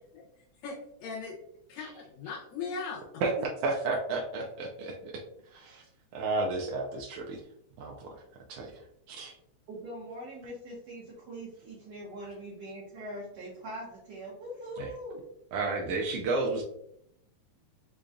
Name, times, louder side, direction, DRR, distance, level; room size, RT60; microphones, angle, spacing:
voice 1, 0.6-1.3 1.7-3.0, left 5 dB, 85° left, -2 dB, 1.9 m, -38 dB
voice 2, 3.2-5.2 5.5-5.8 6.1-7.4 7.8-8.1 8.5-9.3 14.8-14.9 15.5-16.6, right 3 dB, 85° right, 0 dB, 1.3 m, -32 dB
voice 3, 9.7-15.2, right 1 dB, 65° right, -6 dB, 1.8 m, -42 dB
5.1 x 2.2 x 2.4 m, 0.75 s
omnidirectional pair, 3.3 m